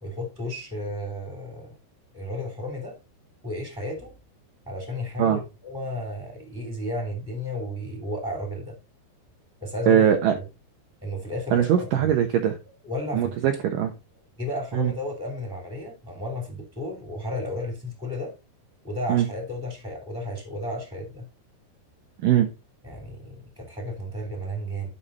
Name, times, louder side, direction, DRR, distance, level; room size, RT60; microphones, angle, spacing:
voice 1, 0.0-1.8 2.1-3.0 3.4-4.2 4.6-8.8 9.6-10.0 10.4-10.5 11.0-12.1 12.8-13.4 14.4-18.3 18.8-21.3 22.8-24.9, left 1 dB, ahead, 2.0 m, -33 dB
voice 2, 9.9-10.3 11.5-12.6 13.1-13.9 14.7-14.9 19.1-19.3 22.2-22.5, right 9 dB, 75° right, 2.1 m, -21 dB
11.5 x 5.6 x 4.1 m
omnidirectional pair, 5.0 m